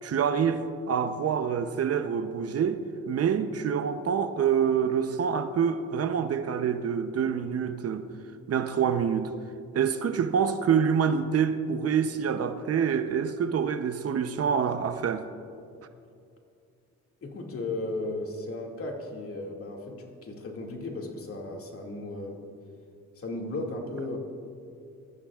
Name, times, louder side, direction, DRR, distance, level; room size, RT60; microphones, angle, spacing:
voice 1, 0.0-8.0 8.5-9.3 9.7-15.3, right 7 dB, 55° right, 0.8 m, -26 dB
voice 2, 17.2-22.4 23.2-24.2, left 2 dB, 50° left, 2.4 m, -35 dB
22.0 x 14.5 x 2.5 m
cardioid pair, 90°, 30 cm